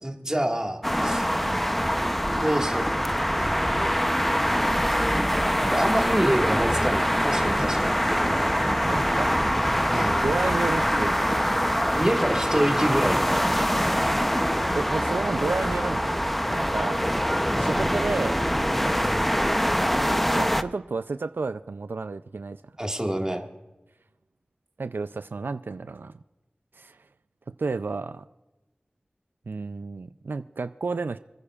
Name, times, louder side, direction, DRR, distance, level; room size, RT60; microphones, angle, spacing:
voice 1, 0.0-1.3 2.4-2.8 3.4-3.8 5.6-8.0 9.9-10.2 12.0-13.7 17.7-17.9 22.8-23.4, right 1 dB, 20° right, 2 dB, 1.7 m, -27 dB
sound 1, 0.8-20.6, equal, 5° left, 0.6 m, -24 dB
voice 2, 8.2-8.5 8.9-9.3 9.9-11.3 14.8-16.2 16.5-17.1 17.6-18.5 20.3-22.6 24.8-26.1 26.8-27.0 27.5-28.2 29.5-31.2, right 4 dB, 85° right, 11 dB, 0.4 m, -31 dB
sound 2, 8.6-10.5, right 1 dB, 50° right, 5.3 m, -45 dB
sound 3, 9.3-13.5, equal, 40° left, 2.7 m, -44 dB
30.0 x 10.0 x 2.4 m, 1.0 s
wide cardioid pair, 40°, 3 cm